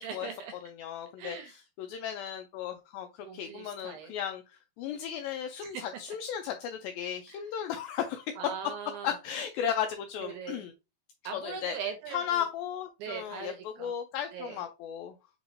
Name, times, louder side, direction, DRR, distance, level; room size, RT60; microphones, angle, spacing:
voice 1, 0.0-0.5 1.2-1.5 3.3-4.1 5.6-5.8 7.3-7.4 8.4-9.1 10.2-10.6 11.3-12.4 13.0-13.9 14.3-14.6, right 7 dB, 80° right, 5 dB, 2.3 m, -40 dB
voice 2, 0.6-3.1 3.3-4.4 4.8-8.3 9.0-10.7 11.3-11.8 12.1-15.1, left 9 dB, 85° left, 6 dB, 2.1 m, -35 dB
6.3 x 2.9 x 2.5 m, 0.26 s
omnidirectional pair, 4.6 m